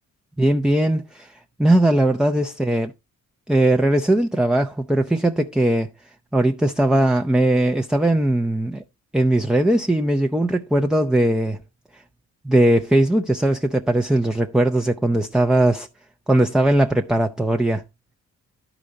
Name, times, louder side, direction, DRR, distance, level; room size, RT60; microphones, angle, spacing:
voice 1, 0.4-2.9 3.5-5.9 6.3-8.8 9.1-11.6 12.4-15.9 16.3-17.8, right 1 dB, ahead, 0.5 m, -19 dB
11.5 x 5.0 x 4.0 m
cardioid pair, 90°, 30 cm